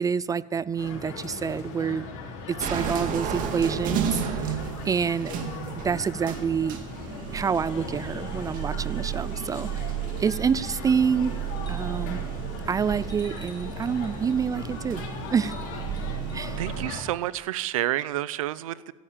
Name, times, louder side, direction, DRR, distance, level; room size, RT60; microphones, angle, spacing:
voice 1, 0.0-2.1 2.5-5.3 5.8-6.8 7.3-9.7 10.2-11.3 11.7-12.2 12.7-15.0 15.3-15.6 16.3-16.6, right 6 dB, 20° right, 20 dB, 0.3 m, -27 dB
sound 1, 0.8-17.0, left 4 dB, 70° left, 3.7 m, -38 dB
sound 2, 2.6-16.9, right 8 dB, 50° right, 2.1 m, -33 dB
sound 3, 10.3-10.9 11.6-12.2 13.1-14.5 15.3-16.5 18.1-18.2, equal, 25° left, 4.4 m, -52 dB
voice 2, 16.6-18.9, right 14 dB, 85° right, 19 dB, 0.6 m, -29 dB
13.5 x 12.0 x 7.3 m, 1.4 s
supercardioid pair, 100°, 17 cm